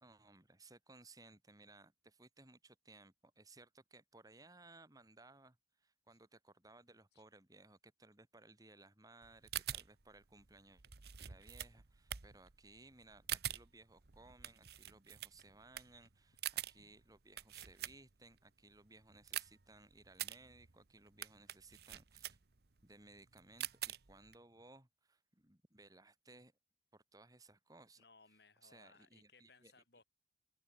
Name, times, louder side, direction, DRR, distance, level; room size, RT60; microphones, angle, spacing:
voice 1, 0.0-10.8 11.2-22.4 22.8-26.5 26.9-28.0 28.6-29.7, right 2 dB, 20° right, 2.5 m, -62 dB
sound 1, 9.2-18.4 18.7-24.4, right 12 dB, 60° right, 1.1 m, -46 dB
voice 2, 28.0-30.0, left 4 dB, 60° left, 6.2 m, -65 dB
open air
head